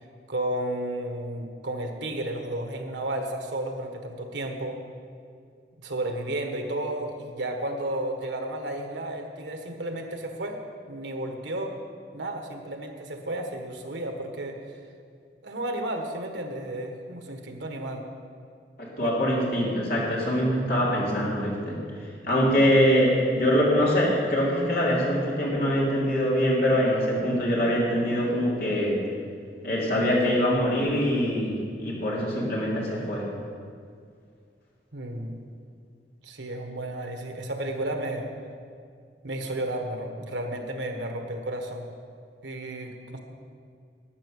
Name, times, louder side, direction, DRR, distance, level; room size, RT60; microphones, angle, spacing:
voice 1, 0.3-4.8 5.8-10.6 10.8-11.7 12.1-14.6 15.4-18.0 19.0-19.1 34.9-35.4 36.2-38.3 39.2-41.8 42.4-43.2, right 1 dB, 90° right, 4 dB, 1.4 m, -32 dB
voice 2, 18.8-21.8 22.3-29.0 29.6-33.2, equal, 55° left, -5 dB, 3.1 m, -23 dB
12.0 x 8.3 x 6.6 m, 2.2 s
head